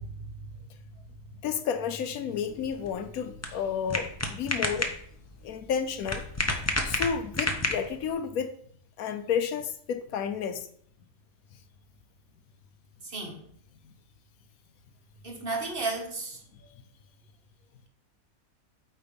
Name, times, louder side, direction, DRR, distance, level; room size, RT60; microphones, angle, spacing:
voice 1, 1.4-5.0 5.4-6.3 6.8-8.5 9.0-10.7, left 7 dB, 70° left, 1.0 m, -31 dB
sound 1, 2.5-8.1, left 1 dB, 15° left, 0.5 m, -32 dB
voice 2, 13.0-13.4 15.2-16.4, right 3 dB, 40° right, 1.3 m, -33 dB
8.7 x 3.2 x 5.3 m
omnidirectional pair, 1.7 m